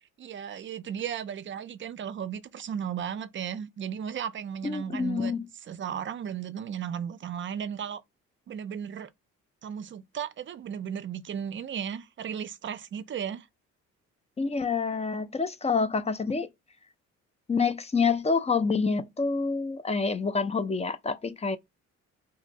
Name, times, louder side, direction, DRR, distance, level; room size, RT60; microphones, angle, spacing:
voice 1, 0.2-5.3 5.6-8.0 8.5-9.1 9.6-13.5, right 8 dB, 40° right, 0.4 m, -35 dB
voice 2, 4.6-5.4 14.4-16.5 17.5-21.6, left 4 dB, 20° left, 0.4 m, -27 dB
2.6 x 2.4 x 3.8 m
cardioid pair, 90°, 30 cm